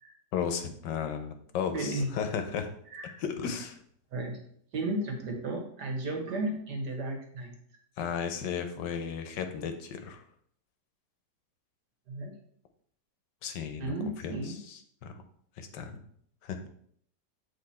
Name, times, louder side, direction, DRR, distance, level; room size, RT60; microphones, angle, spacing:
voice 1, 0.3-2.7 3.2-3.8 8.0-10.2 13.4-15.1 15.6-16.0 16.4-16.7, left 7 dB, 85° left, 7 dB, 1.4 m, -35 dB
voice 2, 1.7-2.1 2.9-3.2 4.1-4.4 4.7-7.6 12.1-12.4 13.8-14.6, right 2 dB, 70° right, 2 dB, 1.8 m, -34 dB
7.8 x 3.6 x 4.2 m, 0.65 s
omnidirectional pair, 1.9 m